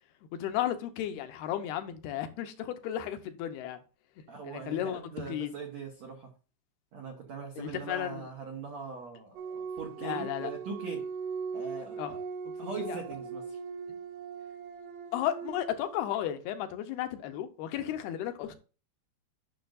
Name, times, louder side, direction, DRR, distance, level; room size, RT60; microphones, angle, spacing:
voice 1, 0.4-3.8 4.4-5.5 7.6-8.3 10.0-10.5 12.0-12.2 12.6-13.0 15.1-18.6, left 11 dB, 75° left, 2.5 m, -34 dB
voice 2, 4.3-6.3 6.9-11.1 11.5-12.2 12.6-13.6, right 5 dB, 90° right, 1.5 m, -41 dB
sound 1, 9.4-16.0, right 5 dB, 70° right, 2.2 m, -39 dB
11.0 x 6.3 x 2.6 m
omnidirectional pair, 5.1 m